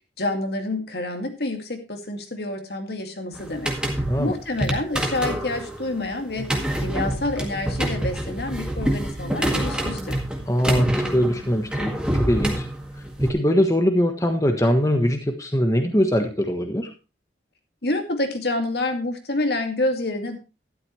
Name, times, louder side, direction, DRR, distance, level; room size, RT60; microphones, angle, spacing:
voice 1, 0.2-6.5 6.8-10.2 17.8-20.4, left 2 dB, 65° left, 5 dB, 2.2 m, -28 dB
sound 1, 3.3-13.3, right 1 dB, 5° right, 1.9 m, -27 dB
voice 2, 10.5-12.7 13.2-16.9, equal, 20° left, 5 dB, 1.2 m, -22 dB
12.5 x 11.5 x 3.1 m, 0.30 s
head